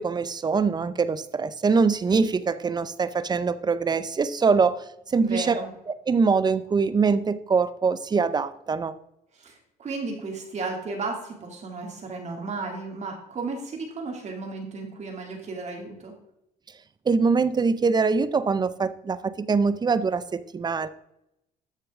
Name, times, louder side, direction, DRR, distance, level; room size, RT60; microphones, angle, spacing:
voice 1, 0.0-5.6 6.1-8.9 17.1-20.9, right 5 dB, 25° right, 15 dB, 0.6 m, -23 dB
voice 2, 5.2-5.7 9.4-9.5 9.8-16.1, right 3 dB, 40° right, 1 dB, 2.6 m, -34 dB
13.0 x 6.6 x 3.6 m, 0.84 s
cardioid pair, 110°, 17 cm